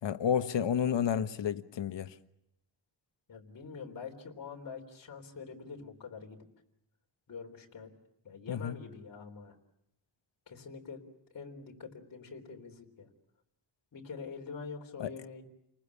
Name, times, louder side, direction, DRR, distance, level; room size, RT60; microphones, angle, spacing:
voice 1, 0.0-2.2 8.5-8.7 15.0-15.1, left 8 dB, 75° left, 1.3 m, -31 dB
voice 2, 3.3-6.4 7.3-7.9 8.2-9.6 10.5-11.0 11.3-13.1 13.9-15.4, left 5 dB, 50° left, 3.7 m, -45 dB
29.5 x 20.0 x 8.4 m
wide cardioid pair, 180°, 44 cm